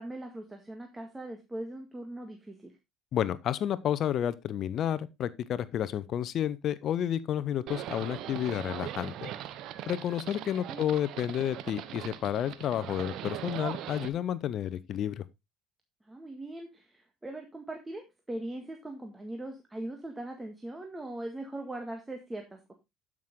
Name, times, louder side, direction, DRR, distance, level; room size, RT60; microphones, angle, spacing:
voice 1, 0.0-2.7 10.7-10.9 16.1-22.6, right 1 dB, 15° right, 1.8 m, -40 dB
voice 2, 3.1-9.3 9.9-15.2, left 10 dB, 55° left, 0.7 m, -31 dB
Livestock farm animals working animals, 7.7-14.1, right 11 dB, 65° right, 1.1 m, -40 dB
12.5 x 6.2 x 3.6 m
hypercardioid pair, 70°, 0 cm